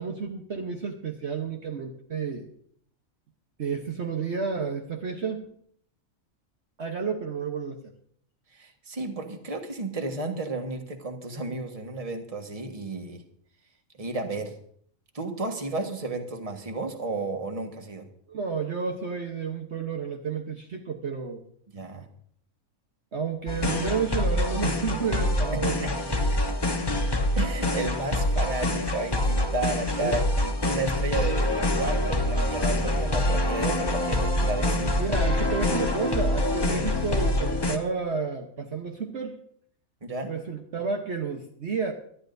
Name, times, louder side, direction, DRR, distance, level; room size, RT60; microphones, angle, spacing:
voice 1, 0.0-2.5 3.6-5.5 6.8-7.9 18.3-21.4 23.1-26.2 30.0-30.2 35.0-39.4 40.3-41.9, right 5 dB, 55° right, 2 dB, 1.3 m, -31 dB
voice 2, 8.5-13.2 14.0-14.5 15.1-18.1 21.7-22.1 25.8-26.0 26.3-26.5 27.4-35.0 40.0-40.3, right 2 dB, 25° right, 4 dB, 1.5 m, -33 dB
sound 1, 23.5-37.8, left 1 dB, 20° left, 1.0 m, -25 dB
23.0 x 12.5 x 2.7 m, 0.63 s
omnidirectional pair, 1.5 m